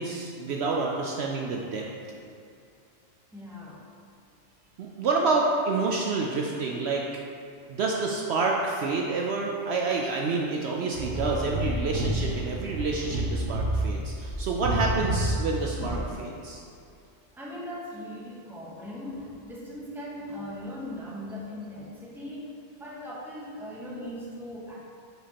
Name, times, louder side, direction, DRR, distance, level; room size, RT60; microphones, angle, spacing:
voice 1, 0.0-1.9 4.8-7.1 7.7-16.6, right 3 dB, 65° right, -1 dB, 0.7 m, -28 dB
voice 2, 3.3-3.8 17.3-24.8, left 1 dB, ahead, -5 dB, 0.8 m, -39 dB
sound 1, 10.9-16.0, right 1 dB, 85° right, 1.6 m, -29 dB
7.8 x 5.0 x 2.9 m, 2.5 s
omnidirectional pair, 1.3 m